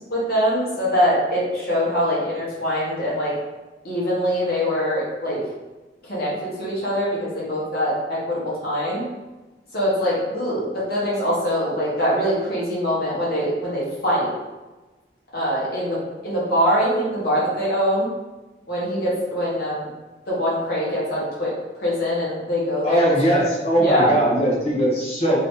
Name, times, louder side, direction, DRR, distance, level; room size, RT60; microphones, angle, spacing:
voice 1, 0.1-3.3 3.8-5.4 6.0-9.0 9.7-14.3 15.3-18.1 18.7-19.9 20.3-21.5 21.8-23.3 23.8-24.1, equal, 60° left, -7 dB, 1.1 m, -23 dB
voice 2, 22.8-25.4, right 1 dB, 35° left, -4 dB, 0.8 m, -20 dB
2.7 x 2.7 x 3.6 m, 1.2 s
head